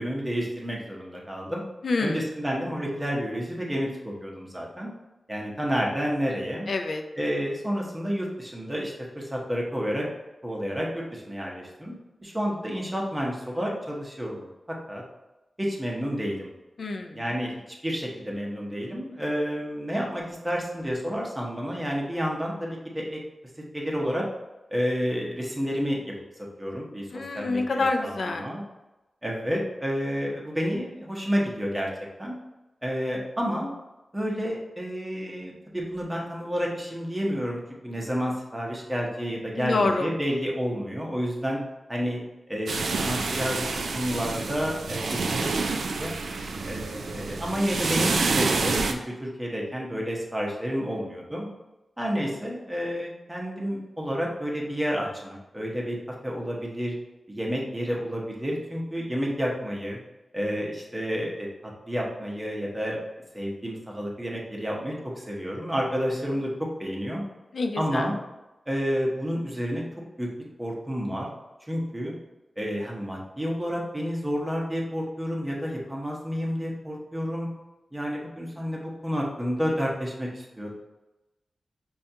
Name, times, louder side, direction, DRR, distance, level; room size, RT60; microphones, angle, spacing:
voice 1, 0.0-1.6 2.0-4.9 5.3-6.7 7.2-10.0 10.4-11.9 12.2-14.5 14.9-15.0 15.6-16.5 17.1-17.5 17.8-23.2 23.7-24.3 24.7-26.0 26.6-28.6 29.2-31.9 32.2-32.4 32.8-33.7 34.1-41.6 41.9-42.2 42.5-43.7 43.9-45.3 45.8-46.1 46.7-51.5 52.0-56.0 56.2-56.9 57.3-60.0 60.3-61.5 61.9-63.0 63.3-66.5 66.8-67.2 67.8-68.1 68.7-69.8 70.2-70.3 70.6-71.3 71.7-72.1 72.6-77.5 77.9-80.7, equal, 10° right, -2 dB, 0.8 m, -30 dB
voice 2, 1.8-2.2 6.7-7.0 16.8-17.3 27.1-28.5 39.6-40.1 67.5-68.1, left 3 dB, 60° left, 5 dB, 0.4 m, -27 dB
sound 1, 42.7-48.9, right 4 dB, 85° right, 0.3 m, -28 dB
5.5 x 2.3 x 2.7 m, 1.0 s
wide cardioid pair, 135°, 0 cm